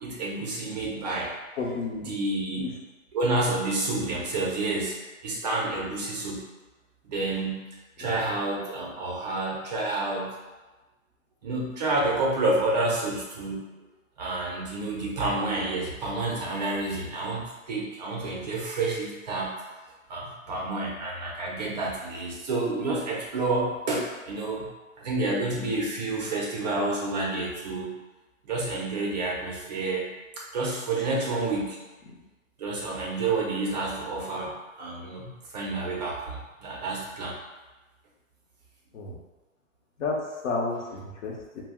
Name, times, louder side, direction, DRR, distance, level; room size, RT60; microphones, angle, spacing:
voice 1, 0.0-1.3 2.1-2.7 3.1-5.0 5.2-6.4 7.0-7.7 8.0-10.3 11.4-13.7 14.2-19.5 20.1-24.7 25.0-27.9 28.4-30.1 30.4-31.8 32.6-37.4, right 2 dB, 35° right, -3 dB, 0.5 m, -29 dB
voice 2, 1.6-2.1 2.6-2.7 8.0-8.2 20.5-20.6 32.1-32.2 38.9-39.2 40.0-41.6, left 3 dB, 60° left, -1 dB, 0.8 m, -32 dB
2.4 x 2.0 x 3.5 m, 1.2 s
hypercardioid pair, 135°, 40 cm